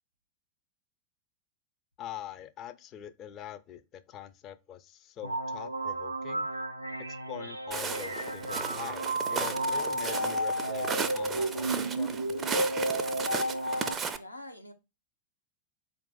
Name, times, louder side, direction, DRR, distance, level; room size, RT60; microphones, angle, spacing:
voice 1, 2.0-6.5 7.0-12.6, left 10 dB, 35° left, 0.4 m, -44 dB
sound 1, 5.2-13.9, right 1 dB, 85° right, 0.4 m, -32 dB
Walk footsteps, 7.7-14.2, right 6 dB, 20° right, 0.4 m, -35 dB
voice 2, 13.7-14.7, left 1 dB, 85° left, 0.7 m, -46 dB
4.4 x 2.4 x 3.8 m
figure-of-eight pair, 90°, 0 cm